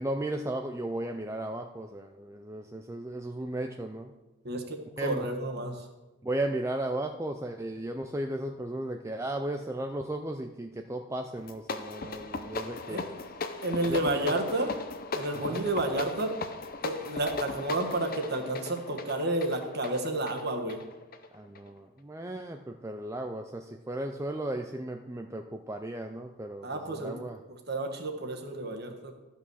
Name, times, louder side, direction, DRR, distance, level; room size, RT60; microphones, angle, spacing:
voice 1, 0.0-4.1 5.0-5.3 6.2-13.2 13.9-14.2 15.3-15.6 21.3-27.4, right 1 dB, 15° right, 4 dB, 0.4 m, -35 dB
voice 2, 4.4-5.7 12.9-13.0 13.6-14.7 15.1-16.3 16.8-20.8 26.6-27.2 27.5-29.1, right 2 dB, 50° right, 4 dB, 1.5 m, -31 dB
sound 1, 11.4-21.7, left 3 dB, 45° left, 0.7 m, -38 dB
13.0 x 5.7 x 6.3 m, 1.1 s
head